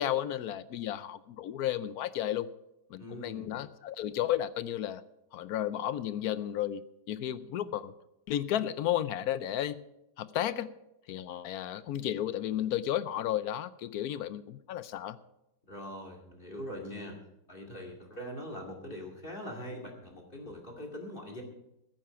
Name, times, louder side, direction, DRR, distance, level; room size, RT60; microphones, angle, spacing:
voice 1, 0.0-2.5 2.9-5.0 5.3-7.9 8.3-9.8 10.2-10.7 11.1-15.2, left 11 dB, 70° left, 15 dB, 1.0 m, -33 dB
voice 2, 3.0-3.5 15.7-17.2 17.5-21.4, equal, 30° left, 1 dB, 2.3 m, -42 dB
15.0 x 9.2 x 5.7 m, 0.87 s
omnidirectional pair, 1.8 m